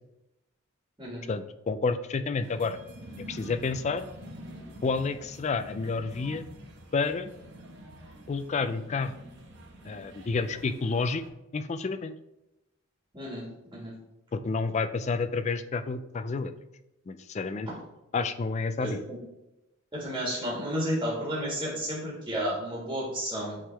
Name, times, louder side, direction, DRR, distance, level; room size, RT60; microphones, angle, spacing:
voice 1, 1.3-2.8 3.3-4.1 4.8-6.4 6.9-7.3 8.3-9.1 9.8-11.2 11.5-12.1 14.3-16.5 17.1-17.7 18.1-19.0, left 4 dB, 30° left, 11 dB, 0.3 m, -30 dB
sound 1, 2.4-11.3, right 1 dB, 55° right, 1.0 m, -47 dB
voice 2, 13.1-13.5 13.7-13.9 18.8-19.2 19.9-23.6, equal, 20° right, -5 dB, 1.7 m, -32 dB
8.6 x 3.6 x 3.3 m, 0.93 s
head